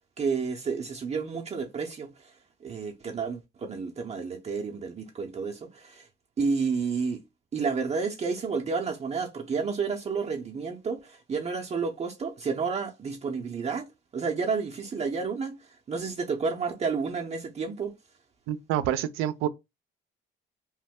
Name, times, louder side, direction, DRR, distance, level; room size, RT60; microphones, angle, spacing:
voice 1, 0.2-2.3 2.6-6.1 6.4-7.2 7.5-17.9, right 5 dB, 30° right, 0.6 m, -31 dB
voice 2, 18.5-19.5, right 11 dB, 85° right, 0.5 m, -27 dB
2.9 x 2.1 x 3.5 m
cardioid pair, 90°, 21 cm